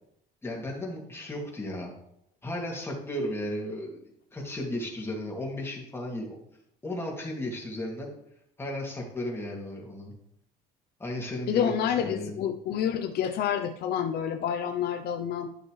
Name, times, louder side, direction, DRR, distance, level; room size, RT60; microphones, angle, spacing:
voice 1, 0.4-1.9 2.4-6.4 6.8-8.1 8.6-10.1 11.0-12.4, left 1 dB, 15° left, -2 dB, 2.5 m, -35 dB
voice 2, 11.5-15.5, left 9 dB, 70° left, 6 dB, 0.7 m, -28 dB
11.5 x 6.7 x 3.3 m, 0.75 s
cardioid pair, 110°, 17 cm